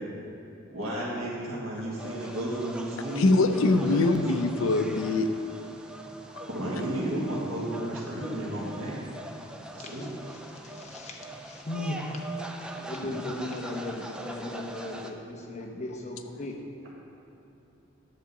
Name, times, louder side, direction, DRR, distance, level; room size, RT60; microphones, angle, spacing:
voice 1, 0.7-4.2 6.5-9.0 9.8-10.0, right 1 dB, 85° right, -5 dB, 1.7 m, -33 dB
sound 1, 2.0-15.1, right 1 dB, 5° right, 0.4 m, -42 dB
voice 2, 3.2-5.3, left 2 dB, 75° left, 7 dB, 0.5 m, -23 dB
voice 3, 10.6-12.2 12.8-16.6, left 1 dB, 35° left, 1 dB, 0.9 m, -37 dB
10.0 x 3.7 x 7.0 m, 2.9 s
head